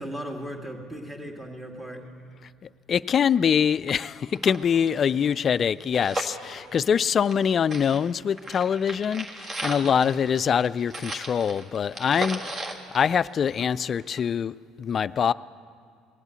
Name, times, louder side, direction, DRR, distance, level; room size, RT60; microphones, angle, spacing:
voice 1, 0.0-2.0 9.8-10.2, equal, 15° right, 2 dB, 2.4 m, -37 dB
voice 2, 2.9-15.3, left 7 dB, 45° left, 18 dB, 0.3 m, -24 dB
sound 1, 3.5-3.6 3.9-4.0 4.3-7.4 7.7-13.8 14.2-14.3, right 1 dB, 35° right, 1.6 m, -36 dB
19.5 x 8.1 x 8.2 m, 2.2 s
hypercardioid pair, 70°, 0 cm